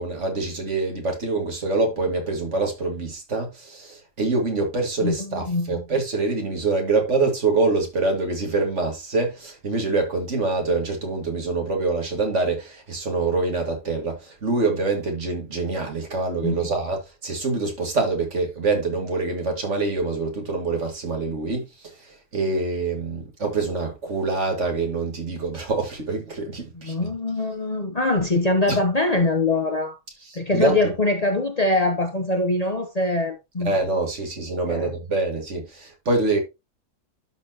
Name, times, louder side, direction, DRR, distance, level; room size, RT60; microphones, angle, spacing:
voice 1, 0.0-21.6 22.3-26.9 28.7-28.8 30.3-30.8 33.6-36.4, right 3 dB, 55° right, 2.4 m, -25 dB
voice 2, 5.0-5.8 16.4-16.7 26.7-30.0 30.3-33.7 34.6-34.9, left 2 dB, 35° left, 0.9 m, -23 dB
12.0 x 4.4 x 2.9 m
omnidirectional pair, 1.4 m